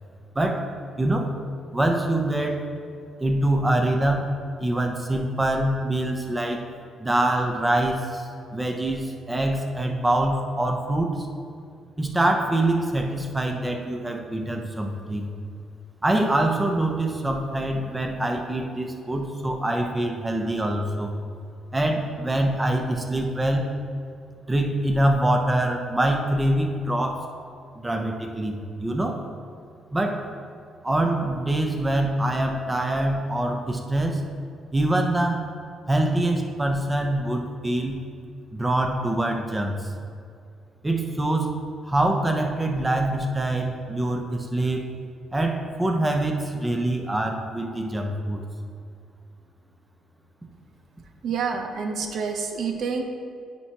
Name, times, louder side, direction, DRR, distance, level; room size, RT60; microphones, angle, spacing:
voice 1, 0.3-0.7 1.0-1.3 1.7-2.7 3.2-4.3 4.6-6.6 7.0-11.3 12.0-15.3 16.0-21.1 21.7-23.7 24.5-27.2 27.8-29.2 29.9-30.2 30.8-34.2 34.7-35.4 35.9-38.0 38.5-39.9 40.8-41.6 41.8-44.9 45.3-48.4, right 1 dB, 15° right, 3 dB, 0.8 m, -24 dB
voice 2, 51.2-53.0, right 5 dB, 65° right, 4 dB, 0.7 m, -28 dB
9.6 x 4.5 x 2.9 m, 2.3 s
cardioid pair, 90°, 0 cm